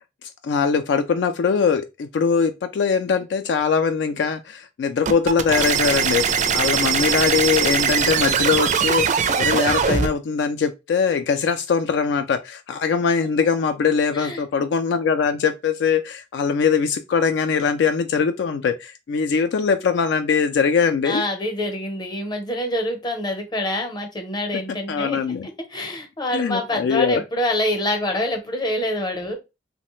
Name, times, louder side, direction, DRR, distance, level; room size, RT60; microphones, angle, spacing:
voice 1, 0.4-21.2 24.9-25.5 26.3-27.2, left 6 dB, 70° left, 0.3 m, -22 dB
sound 1, 5.1-10.1, right 6 dB, 45° right, 0.4 m, -21 dB
voice 2, 21.0-25.2 25.7-29.4, left 1 dB, 25° left, 0.7 m, -26 dB
3.0 x 2.1 x 3.0 m
head